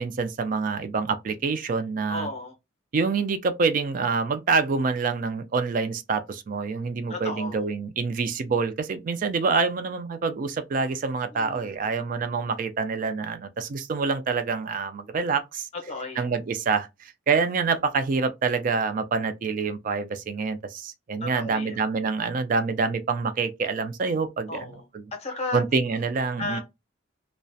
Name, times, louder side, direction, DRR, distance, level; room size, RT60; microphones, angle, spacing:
voice 1, 0.0-2.3 2.9-15.7 16.2-24.5 25.5-26.6, right 4 dB, 40° right, 0.3 m, -26 dB
voice 2, 2.1-2.5 7.1-7.6 11.3-11.9 15.7-16.3 21.2-21.8 24.5-24.8 25.1-25.6 26.4-26.6, left 2 dB, 30° left, 0.7 m, -34 dB
2.3 x 2.1 x 2.6 m
head